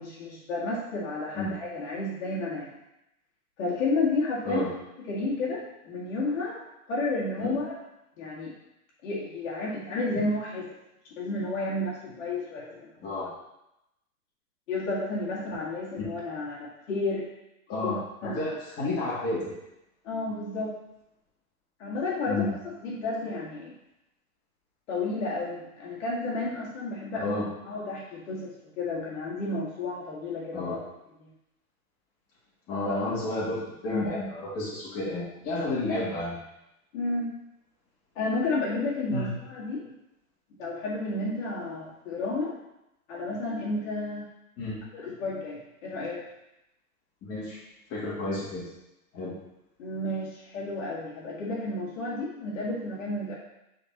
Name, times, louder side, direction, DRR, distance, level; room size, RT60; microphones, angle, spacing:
voice 1, 0.0-2.7 3.6-4.7 5.0-6.6 6.9-7.8 8.2-8.5 9.0-10.7 11.2-12.9 14.7-17.3 17.8-17.9 18.2-18.4 20.0-20.8 21.8-22.5 22.8-23.7 24.9-27.4 27.7-30.8 32.8-32.9 33.9-34.1 36.9-37.3 38.2-39.9 40.6-42.5 43.1-44.3 44.9-46.2 49.8-53.4, left 2 dB, 65° left, -5 dB, 2.0 m, -31 dB
voice 2, 17.7-19.5 22.3-22.5 27.1-27.5 30.5-30.8 32.7-36.4 39.1-39.3 44.6-44.8 47.2-47.6 47.9-48.6 49.1-49.3, left 2 dB, 35° left, -6 dB, 2.4 m, -31 dB
8.8 x 4.2 x 2.9 m, 0.87 s
hypercardioid pair, 135°, 43 cm